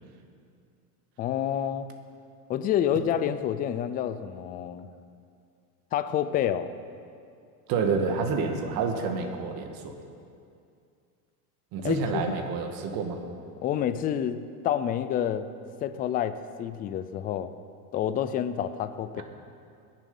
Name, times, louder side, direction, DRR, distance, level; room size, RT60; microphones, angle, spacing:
voice 1, 1.2-1.9 2.5-4.9 5.9-6.7 11.8-12.2 13.6-15.5 15.8-17.5 17.9-19.2, left 10 dB, 20° left, 12 dB, 0.3 m, -28 dB
voice 2, 7.7-10.0 11.7-13.2 19.2-19.3, right 4 dB, 50° right, 4 dB, 1.8 m, -28 dB
21.0 x 7.5 x 5.4 m, 2.4 s
supercardioid pair, 135°, 45 cm